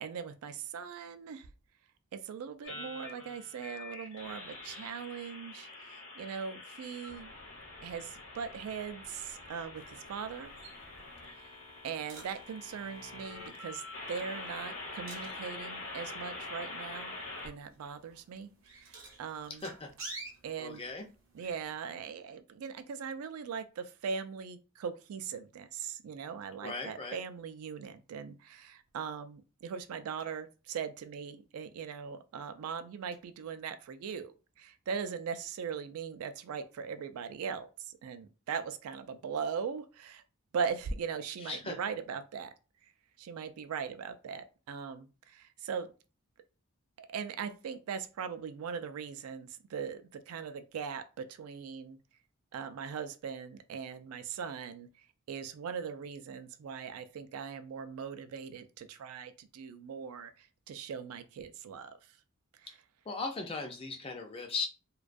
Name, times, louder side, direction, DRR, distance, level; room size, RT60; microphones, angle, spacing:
voice 1, 0.0-1.5 2.1-7.3 7.8-10.5 11.3-11.5 11.8-13.8 14.1-17.1 17.4-19.6 20.4-20.8 21.4-40.2 40.5-42.5 43.2-45.9 47.0-52.0 52.5-54.9 55.3-62.0, right 6 dB, 80° right, 0.3 m, -40 dB
sound 1, 2.6-17.5, left 2 dB, 55° left, 0.8 m, -45 dB
sound 2, 9.7-21.8, right 3 dB, 60° right, 0.7 m, -53 dB
voice 2, 19.5-19.9 20.6-21.1 26.6-27.2 41.4-41.8 62.7-62.8 63.1-64.7, left 3 dB, 25° left, 0.4 m, -38 dB
2.2 x 2.2 x 2.5 m
head